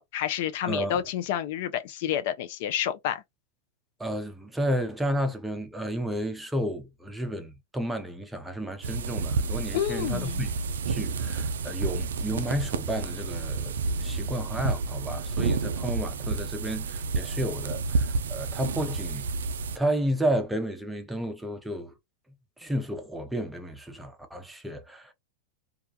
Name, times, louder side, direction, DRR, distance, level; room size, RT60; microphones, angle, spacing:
voice 1, 0.0-3.2 9.7-10.4, left 10 dB, 60° left, 0.3 m, -29 dB
voice 2, 0.6-1.0 4.0-10.6 10.9-13.7 14.0-19.3 19.7-21.9 22.6-25.1, equal, 5° right, 0.6 m, -32 dB
sound 1, 8.8-19.8, right 4 dB, 85° right, 0.3 m, -30 dB
2.3 x 2.2 x 2.6 m
hypercardioid pair, 120°, 0 cm